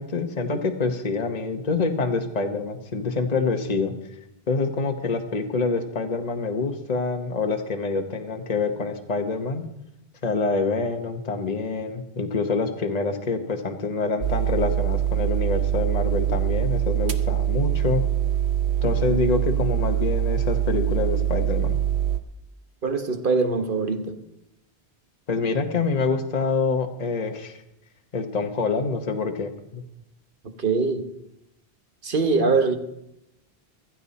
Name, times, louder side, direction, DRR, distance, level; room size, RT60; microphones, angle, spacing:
voice 1, 0.0-3.9 4.5-9.6 10.2-18.0 18.8-21.8 25.3-27.6 28.1-29.8, left 4 dB, 40° left, 4 dB, 1.1 m, -26 dB
sound 1, 14.2-22.2, right 11 dB, 90° right, 1.1 m, -24 dB
voice 2, 22.8-24.2 30.6-31.1 32.0-32.8, right 4 dB, 55° right, 7 dB, 1.3 m, -22 dB
15.5 x 13.0 x 4.2 m, 0.85 s
omnidirectional pair, 1.1 m